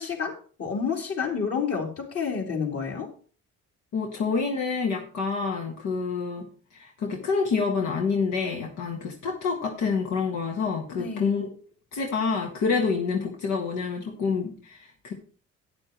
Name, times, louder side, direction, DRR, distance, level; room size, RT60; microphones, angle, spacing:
voice 1, 0.0-3.1 11.0-11.3, left 6 dB, 50° left, 0 dB, 3.4 m, -29 dB
voice 2, 3.9-6.5 6.7-11.5 11.9-15.1, left 5 dB, 80° left, 1 dB, 1.7 m, -27 dB
12.0 x 9.7 x 3.0 m, 0.40 s
cardioid pair, 90°, 30 cm